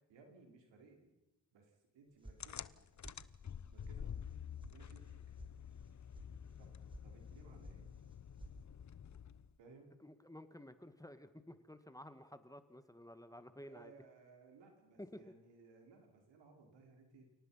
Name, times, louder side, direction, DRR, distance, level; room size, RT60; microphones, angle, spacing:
voice 1, 0.1-1.1 1.5-2.9 3.7-4.1 4.7-5.1 6.6-7.9 9.6-9.9 13.6-17.3, right 4 dB, 85° right, 3 dB, 4.9 m, -62 dB
sound 1, 2.2-2.8 3.0-3.6 3.8-3.9 4.3-4.7 5.0-5.5 5.8-6.3 6.6-7.1 7.3-7.8 8.1-8.6, right 1 dB, 10° right, 4.9 m, -54 dB
sound 2, 2.4-9.6, left 8 dB, 40° left, 0.9 m, -49 dB
voice 2, 10.0-13.9 15.0-15.2, left 1 dB, 10° left, 10 dB, 1.9 m, -53 dB
30.0 x 18.0 x 5.8 m, 0.95 s
supercardioid pair, 55°, 42 cm